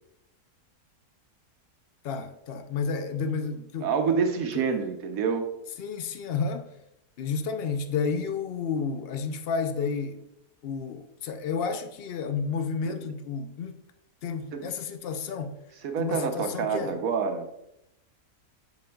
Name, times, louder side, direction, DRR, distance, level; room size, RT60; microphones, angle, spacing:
voice 1, 2.0-3.9 4.5-4.6 5.8-6.7 7.2-10.2 10.6-13.7 14.2-15.5 16.0-17.0, left 5 dB, 75° left, 0.5 m, -31 dB
voice 2, 3.8-5.4 12.9-13.0 14.5-14.7 15.8-17.5, right 5 dB, 70° right, 1.1 m, -27 dB
8.8 x 6.0 x 2.3 m
omnidirectional pair, 1.7 m